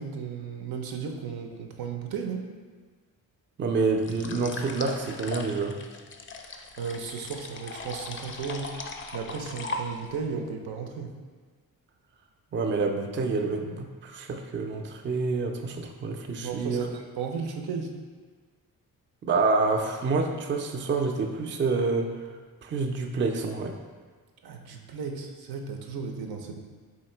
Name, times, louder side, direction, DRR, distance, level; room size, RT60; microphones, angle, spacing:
voice 1, 0.0-2.5 6.8-8.7 9.1-11.1 16.4-17.9 24.4-26.6, right 5 dB, 85° right, 3 dB, 0.6 m, -35 dB
voice 2, 3.6-5.8 12.5-16.9 19.2-22.3 22.6-23.8, right 4 dB, 35° right, 4 dB, 0.4 m, -27 dB
sound 1, 4.0-10.2, left 3 dB, 35° left, 0.4 m, -38 dB
3.7 x 2.8 x 4.4 m, 1.5 s
cardioid pair, 100°, 36 cm